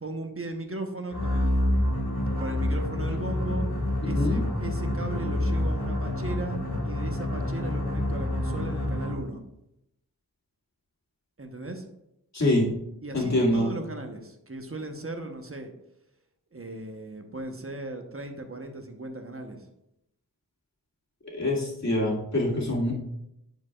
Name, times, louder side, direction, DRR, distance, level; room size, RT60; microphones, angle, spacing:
voice 1, 0.0-1.5 2.4-3.7 4.0-6.6 6.8-9.4 11.4-11.9 13.0-15.7 16.5-19.7, right 2 dB, 35° right, 5 dB, 1.0 m, -37 dB
sound 1, 1.1-9.3, left 1 dB, 65° left, 2.1 m, -28 dB
voice 2, 12.3-12.6 13.1-13.7 21.3-22.9, left 1 dB, 40° left, -4 dB, 2.3 m, -25 dB
10.5 x 5.0 x 2.4 m, 0.83 s
cardioid pair, 45°, 40 cm